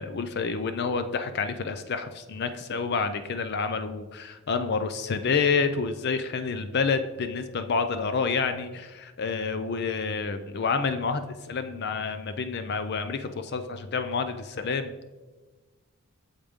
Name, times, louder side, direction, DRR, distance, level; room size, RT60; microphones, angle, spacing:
voice 1, 0.0-14.9, left 5 dB, 45° left, 9 dB, 0.4 m, -28 dB
8.6 x 7.2 x 3.6 m, 1.3 s
head